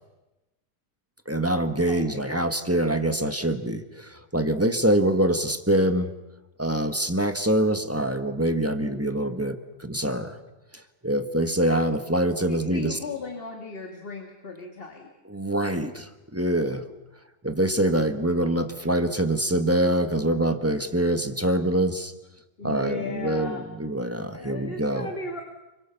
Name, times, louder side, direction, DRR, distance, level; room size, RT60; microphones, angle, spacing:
voice 1, 1.3-6.1 6.6-10.4 11.0-13.0 15.2-16.8 17.4-22.1 22.6-25.1, right 1 dB, 10° right, 7 dB, 1.3 m, -25 dB
voice 2, 1.9-2.3 12.1-15.1 22.6-23.6 24.2-25.4, left 3 dB, 40° left, 2 dB, 2.3 m, -36 dB
30.0 x 23.0 x 7.1 m, 1.0 s
omnidirectional pair, 1.5 m